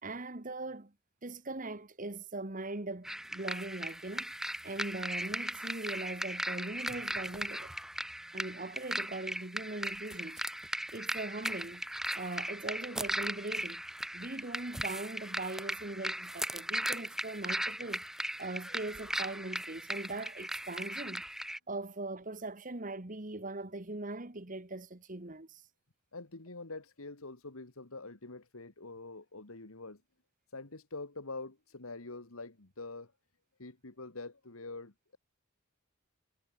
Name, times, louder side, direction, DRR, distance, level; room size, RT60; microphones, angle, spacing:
voice 1, 0.0-0.9 1.2-4.3 4.6-7.7 8.3-10.4 10.9-11.8 12.1-13.8 14.1-18.0 18.4-21.2 21.7-25.6, right 2 dB, 35° right, 1.5 m, -40 dB
sound 1, 3.1-21.6, right 1 dB, ahead, 0.8 m, -38 dB
voice 2, 26.1-30.0 30.5-33.1 33.6-35.2, left 3 dB, 75° left, 2.0 m, -45 dB
head